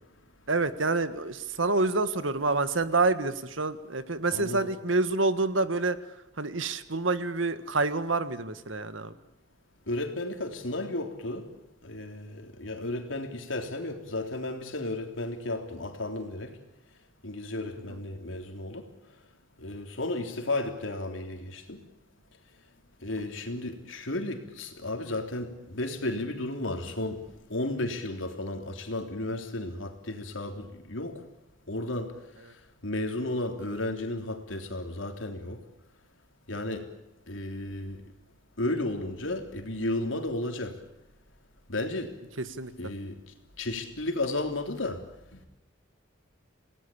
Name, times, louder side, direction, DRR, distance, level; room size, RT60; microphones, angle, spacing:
voice 1, 0.5-6.0 6.4-9.1 17.9-18.0 42.4-42.9, right 3 dB, 85° right, 1.7 m, -27 dB
voice 2, 4.3-4.7 9.9-11.5 11.8-16.5 17.2-18.9 19.6-21.8 23.0-27.2 27.5-31.2 31.7-32.1 32.8-35.6 36.5-36.9 37.3-38.0 38.6-40.8 41.7-42.1 42.8-43.2 43.6-45.0 45.3-45.5, left 2 dB, 90° left, 3.5 m, -33 dB
28.5 x 18.5 x 8.7 m
head